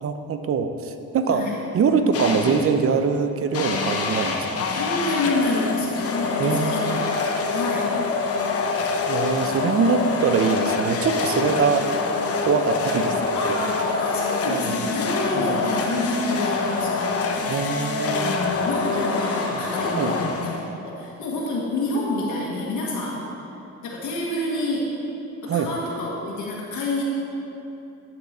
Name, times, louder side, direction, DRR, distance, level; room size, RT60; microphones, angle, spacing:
voice 1, 0.0-1.5 1.7-4.7 6.4-7.1 9.1-11.9 12.4-13.2 13.5-13.6 14.4-14.9 15.3-15.6 17.4-18.4 20.0-20.1 25.5-25.7, right 5 dB, 50° right, 8 dB, 0.7 m, -23 dB
voice 2, 1.3-1.6 3.9-4.1 4.7-7.0 7.5-8.0 11.8-11.9 13.3-20.6 20.8-23.2 23.8-24.9 25.4-27.0, left 2 dB, 75° left, -4 dB, 1.6 m, -28 dB
sound 1, 2.1-2.8 3.5-20.9, left 4 dB, 50° left, 0.9 m, -25 dB
11.5 x 6.0 x 4.3 m, 2.8 s
cardioid pair, 90°, 30 cm